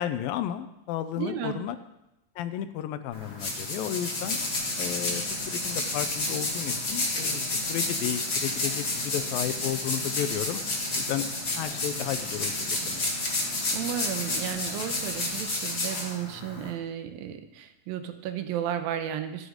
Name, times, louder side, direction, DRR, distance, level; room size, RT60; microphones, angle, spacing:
voice 1, 0.0-1.8 2.4-4.4 4.8-10.6 10.9-11.3 11.5-13.1, left 11 dB, 85° left, 11 dB, 2.5 m, -33 dB
voice 2, 1.2-1.6 13.7-19.5, right 9 dB, 85° right, 8 dB, 2.6 m, -33 dB
sound 1, 3.1-16.7, left 2 dB, 35° left, 1.8 m, -30 dB
sound 2, 4.2-15.4, right 3 dB, 50° right, 0.8 m, -44 dB
13.0 x 8.0 x 5.0 m, 0.90 s
omnidirectional pair, 4.1 m